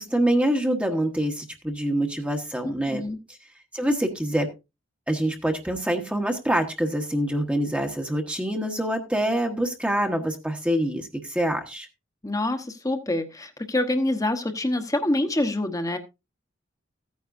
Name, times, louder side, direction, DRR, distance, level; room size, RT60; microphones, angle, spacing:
voice 1, 0.0-3.0 3.3-3.4 3.7-4.5 5.1-11.9, right 1 dB, 5° right, 1.1 m, -25 dB
voice 2, 2.6-3.2 12.2-16.0, left 1 dB, 15° left, 1.0 m, -26 dB
15.0 x 9.5 x 2.6 m
head